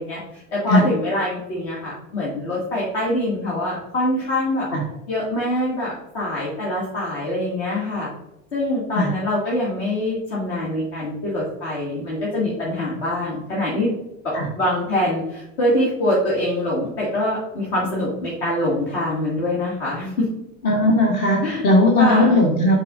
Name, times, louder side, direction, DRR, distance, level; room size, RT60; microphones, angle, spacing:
voice 1, 0.0-4.7 5.1-8.1 8.5-13.9 14.2-20.3 21.4-21.6 22.0-22.5, left 1 dB, 50° left, -6 dB, 2.2 m, -24 dB
voice 2, 20.6-22.8, left 1 dB, 35° left, 0 dB, 1.3 m, -17 dB
8.9 x 5.4 x 2.5 m, 0.91 s
figure-of-eight pair, 80°, 41 cm